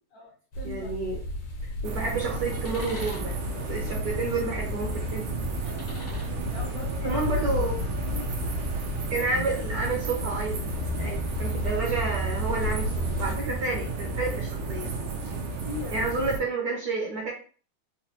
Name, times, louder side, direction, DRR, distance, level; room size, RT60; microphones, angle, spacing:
voice 1, 0.1-0.9 5.6-5.9 6.2-7.2 7.9-8.3 11.0-11.2 15.5-16.0, left 3 dB, 70° left, -1 dB, 0.9 m, -41 dB
sound 1, 0.5-13.4, left 1 dB, 85° left, 1.8 m, -36 dB
voice 2, 0.6-1.2 1.6-3.4 3.7-5.3 7.0-7.8 9.1-10.7 11.0-14.9 15.9-17.3, right 3 dB, 65° right, -1 dB, 1.0 m, -30 dB
sound 2, 1.8-16.4, right 2 dB, 85° right, 1.6 m, -31 dB
4.2 x 2.3 x 2.8 m, 0.41 s
omnidirectional pair, 2.3 m